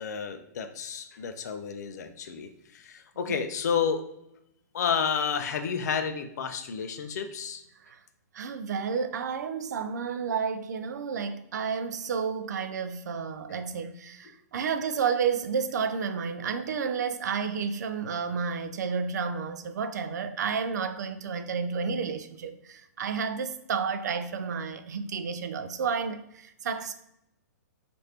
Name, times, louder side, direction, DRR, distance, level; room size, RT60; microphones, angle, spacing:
voice 1, 0.0-4.1 4.7-7.6, left 6 dB, 70° left, 8 dB, 0.4 m, -31 dB
voice 2, 8.3-26.9, right 6 dB, 75° right, 10 dB, 0.4 m, -31 dB
3.2 x 2.5 x 2.8 m, 0.83 s
hypercardioid pair, 140°, 9 cm